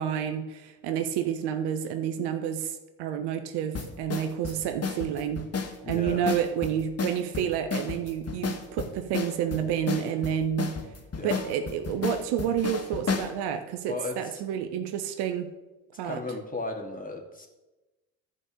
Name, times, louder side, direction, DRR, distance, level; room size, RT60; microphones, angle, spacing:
voice 1, 0.0-5.5 5.9-10.8 11.2-15.5 16.0-16.2, right 9 dB, 70° right, 8 dB, 1.0 m, -29 dB
sound 1, 3.7-13.3, left 5 dB, 35° left, 1.6 m, -33 dB
voice 2, 5.8-6.2 11.1-11.4 13.8-14.4 16.0-17.5, left 2 dB, 20° left, 1 dB, 2.7 m, -35 dB
13.0 x 5.3 x 6.4 m, 1.1 s
hypercardioid pair, 55°, 41 cm